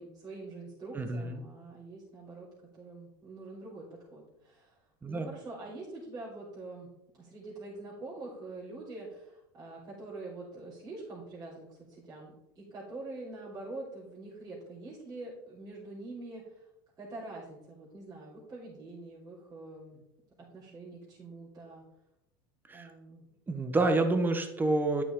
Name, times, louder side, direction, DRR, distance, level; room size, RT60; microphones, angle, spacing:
voice 1, 0.0-4.8 5.1-16.7 17.0-20.0 20.4-21.8 22.7-23.3, right 2 dB, 30° right, -8 dB, 3.5 m, -45 dB
voice 2, 0.9-1.4 5.0-5.3 22.7-22.9 23.5-25.0, right 2 dB, 15° right, 8 dB, 1.1 m, -28 dB
9.6 x 6.1 x 3.8 m, 0.87 s
supercardioid pair, 110°, 12 cm